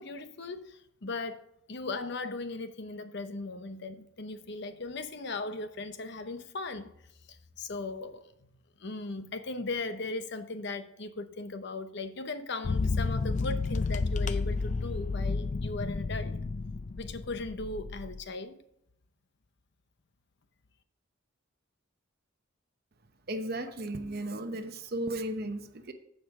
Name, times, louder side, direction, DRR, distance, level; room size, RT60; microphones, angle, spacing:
voice 1, 0.0-6.9 7.3-8.3 8.8-16.4 17.0-18.6, left 3 dB, 60° left, 0.8 m, -38 dB
sound 1, 12.6-18.2, left 3 dB, 40° left, 0.4 m, -31 dB
voice 2, 23.3-25.9, right 1 dB, 55° right, 0.9 m, -35 dB
15.0 x 5.1 x 3.7 m
head